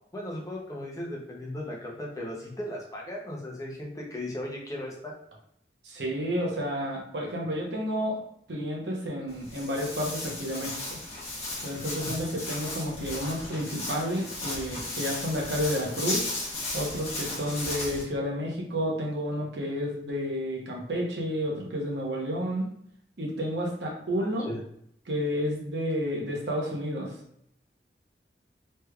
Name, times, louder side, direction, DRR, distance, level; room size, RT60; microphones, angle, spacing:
voice 1, 0.1-5.1 12.0-12.1 24.2-24.6, left 1 dB, 20° left, -2 dB, 0.6 m, -37 dB
voice 2, 5.8-8.2 8.5-11.0 11.6-16.3 16.7-22.7 23.2-24.5 25.1-27.1, equal, 85° right, -1 dB, 0.9 m, -31 dB
Walk footsteps, 9.3-18.0, left 2 dB, 35° left, 1.0 m, -35 dB
3.2 x 3.1 x 2.3 m, 0.70 s
head